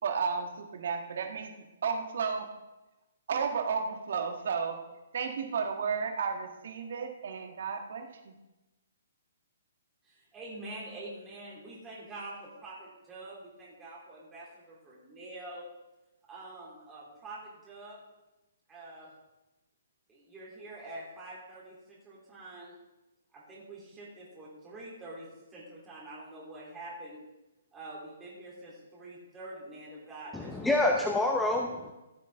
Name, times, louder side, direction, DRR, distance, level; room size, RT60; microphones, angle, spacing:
voice 1, 0.0-1.5 1.8-2.5 3.3-4.8 5.1-8.3, right 6 dB, 60° right, 5 dB, 1.6 m, -33 dB
voice 2, 10.0-15.7 16.3-18.0 18.7-19.1 20.1-22.7 23.3-27.2 27.7-30.8, right 2 dB, 15° right, -7 dB, 3.1 m, -46 dB
voice 3, 30.3-31.9, left 2 dB, 5° left, 1 dB, 0.8 m, -27 dB
15.0 x 8.1 x 3.6 m, 1.0 s
figure-of-eight pair, 130°, 0 cm